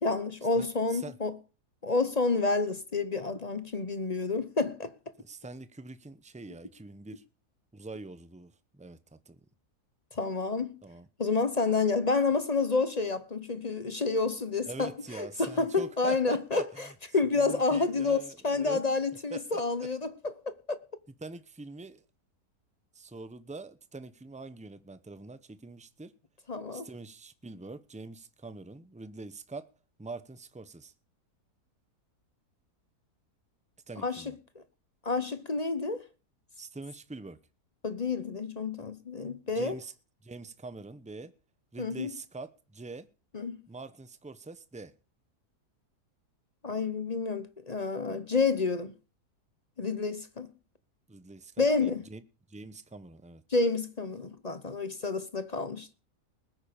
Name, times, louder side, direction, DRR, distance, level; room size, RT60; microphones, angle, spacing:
voice 1, 0.0-1.4 1.8-4.9 10.1-10.8 11.2-16.9 17.1-18.2 18.4-20.8 26.5-26.9 34.0-34.6 35.0-36.0 37.8-39.8 41.8-42.1 43.3-43.6 46.6-48.9 49.8-50.5 51.6-52.0 53.5-55.9, left 4 dB, 30° left, 0.8 m, -29 dB
voice 2, 0.5-1.2 5.2-7.2 7.7-9.4 10.8-11.1 14.7-16.9 17.3-18.8 19.3-19.9 21.2-22.0 22.9-26.1 26.7-29.7 30.0-30.9 33.9-34.4 36.6-37.4 39.5-39.9 40.2-41.3 41.7-43.1 43.7-44.9 51.1-52.2 52.5-53.4, right 3 dB, 10° right, 0.5 m, -44 dB
20.0 x 9.1 x 5.2 m
omnidirectional pair, 1.8 m